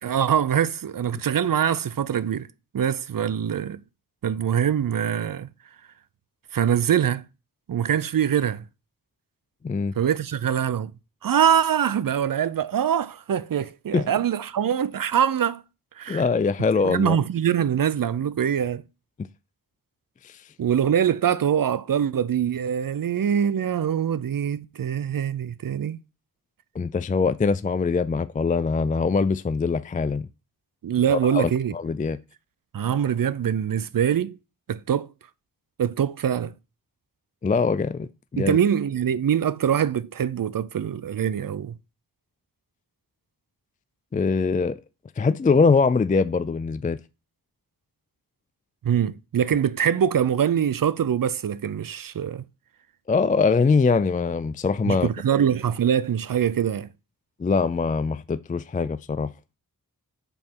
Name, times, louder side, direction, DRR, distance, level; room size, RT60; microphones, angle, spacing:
voice 1, 0.0-2.5 2.7-3.8 4.2-5.5 6.5-7.3 7.7-8.7 10.0-10.9 11.2-15.6 16.0-16.3 16.8-18.8 20.6-26.0 30.8-31.7 32.7-34.4 34.7-35.1 35.8-36.5 38.4-41.8 48.8-52.5 54.8-56.9, right 9 dB, 60° right, 0.5 m, -23 dB
voice 2, 9.6-9.9 13.9-14.0 16.1-17.2 20.2-20.4 26.7-30.3 31.1-32.2 37.4-38.6 44.1-44.8 45.2-47.0 53.1-55.1 57.4-59.3, left 4 dB, 25° left, 0.3 m, -23 dB
5.4 x 4.2 x 6.1 m
cardioid pair, 45°, 38 cm